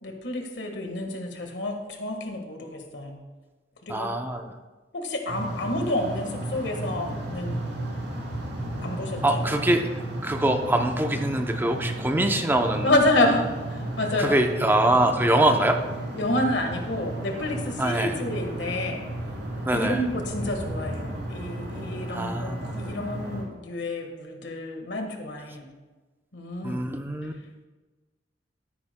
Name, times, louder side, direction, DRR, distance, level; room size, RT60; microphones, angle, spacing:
voice 1, 0.0-3.2 3.8-4.1 4.9-7.6 8.8-9.4 12.8-14.4 16.1-19.0 19.7-25.6 26.3-26.9, left 1 dB, 75° left, 4 dB, 1.5 m, -29 dB
voice 2, 3.9-4.5 9.2-9.9 10.2-12.9 14.2-15.8 17.8-18.2 19.6-20.0 22.1-22.8 26.6-27.3, right 1 dB, 10° right, 5 dB, 0.6 m, -24 dB
sound 1, 5.3-23.4, right 1 dB, 85° right, 2.8 m, -34 dB
sound 2, 6.6-21.1, right 1 dB, 30° left, 2.0 m, -40 dB
13.0 x 10.5 x 2.2 m, 1.3 s
head